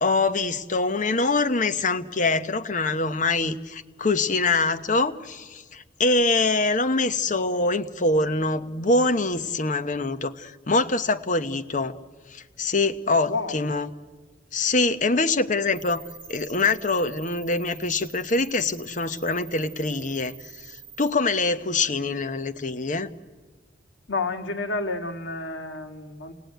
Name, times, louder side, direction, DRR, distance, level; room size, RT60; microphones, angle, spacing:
voice 1, 0.0-12.0 12.3-13.9 14.5-16.0 16.3-23.1, left 3 dB, 45° left, 9 dB, 1.0 m, -24 dB
voice 2, 13.3-13.6 24.1-26.3, left 3 dB, 85° left, 4 dB, 2.1 m, -30 dB
sound 1, 15.7-21.1, right 8 dB, 25° right, 4.9 m, -46 dB
29.0 x 18.0 x 9.2 m, 1.4 s
head